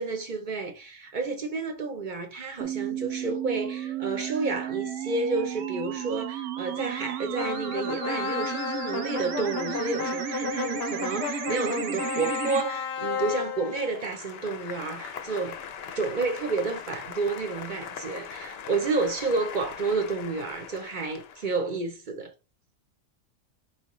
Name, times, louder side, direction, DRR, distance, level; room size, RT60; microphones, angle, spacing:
voice 1, 0.0-15.6 15.9-22.3, right 3 dB, 50° right, 0.7 m, -30 dB
sound 1, 2.6-12.6, right 10 dB, 80° right, 0.9 m, -33 dB
sound 2, 7.3-21.5, left 7 dB, 65° left, 0.7 m, -35 dB
4.3 x 3.1 x 3.0 m
omnidirectional pair, 1.3 m